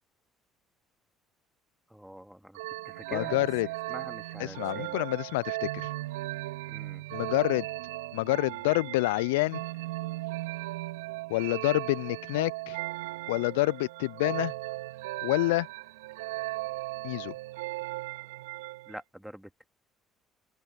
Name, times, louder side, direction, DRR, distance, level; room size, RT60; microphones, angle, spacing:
voice 1, 1.9-2.6 2.8-3.4 3.9-5.0 6.7-7.0 18.9-19.5, equal, ahead, 2.4 m, -44 dB
sound 1, 2.5-19.0, right 20 dB, 75° right, 2.8 m, -37 dB
voice 2, 3.1-3.7 4.4-5.9 7.1-7.7 8.1-9.6 11.3-12.8 13.3-14.5 15.2-15.7 17.0-17.3, left 21 dB, 75° left, 0.4 m, -28 dB
open air
hypercardioid pair, 55°, 0 cm